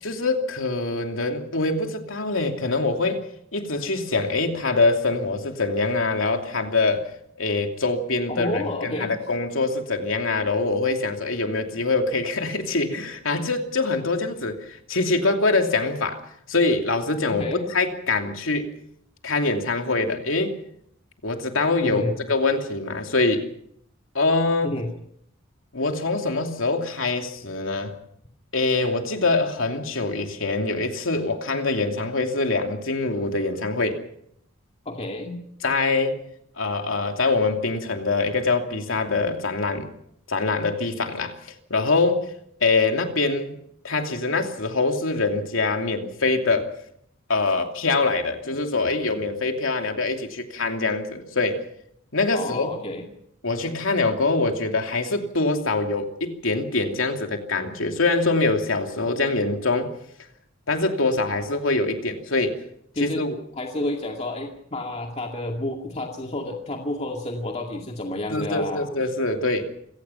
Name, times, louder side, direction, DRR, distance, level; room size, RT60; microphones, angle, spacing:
voice 1, 0.0-3.2 3.5-7.0 7.4-16.2 16.5-18.7 19.2-20.5 21.2-23.5 24.1-24.8 25.7-28.0 28.5-34.0 35.6-36.1 36.6-39.9 40.3-41.3 41.7-42.3 42.6-43.6 43.8-46.7 47.3-51.6 52.1-52.8 53.4-59.9 60.7-62.6 63.0-63.4 68.3-69.6, left 3 dB, 85° left, 2.8 m, -24 dB
voice 2, 8.3-9.1 17.3-17.7 21.8-22.2 24.6-24.9 34.9-35.4 52.3-53.0 63.0-63.3 63.5-68.9, left 1 dB, 30° left, 2.3 m, -30 dB
27.5 x 17.5 x 5.8 m
head